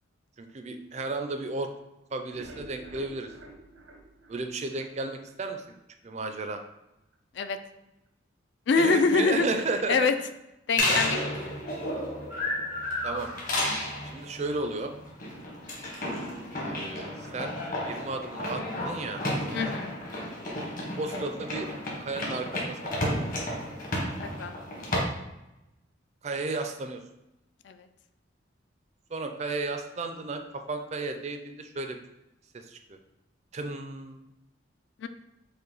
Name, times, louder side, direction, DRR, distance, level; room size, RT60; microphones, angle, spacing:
voice 1, 0.4-1.7 2.1-3.3 4.3-5.6 6.0-6.6 8.8-10.1 13.0-13.3 14.0-14.9 16.6-17.5 17.8-19.2 21.0-21.7 22.0-23.2 23.5-23.6 26.2-27.0 29.1-30.4 30.7-32.0 32.6-33.0 33.5-34.2, right 3 dB, 35° right, 6 dB, 0.4 m, -33 dB
sound 1, 2.3-5.4 5.7-5.8 6.2-6.3 6.7-6.8, right 2 dB, 85° right, 0.8 m, -49 dB
voice 2, 8.7-9.5 9.9-10.1 10.7-11.2 19.5-20.0 24.4-24.6 27.7-27.8 35.0-35.1, left 4 dB, 65° left, 9 dB, 0.3 m, -24 dB
sound 2, 10.8-25.0, left 1 dB, 45° left, 1.1 m, -32 dB
5.4 x 2.2 x 3.9 m, 0.91 s
head